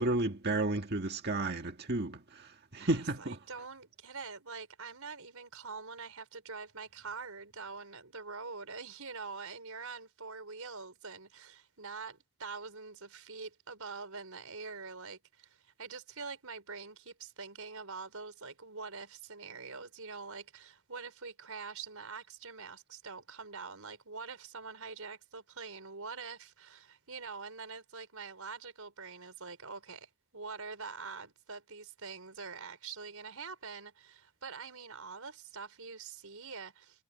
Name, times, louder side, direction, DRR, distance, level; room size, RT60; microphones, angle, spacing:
voice 1, 0.0-3.4, right 2 dB, 45° right, 1.9 m, -32 dB
voice 2, 2.8-37.0, right 4 dB, 75° right, 5.1 m, -45 dB
head